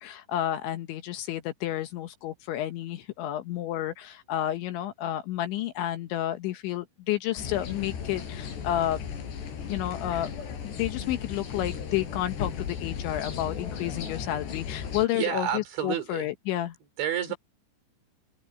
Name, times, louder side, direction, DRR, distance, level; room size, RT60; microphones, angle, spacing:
voice 1, 0.0-9.0 9.6-10.3 10.6-16.8, left 13 dB, 75° left, 3.2 m, -31 dB
sound 1, 7.4-15.1, left 7 dB, 60° left, 5.8 m, -36 dB
voice 2, 15.1-16.3 17.0-17.4, right 9 dB, 65° right, 6.0 m, -29 dB
omnidirectional pair, 5.9 m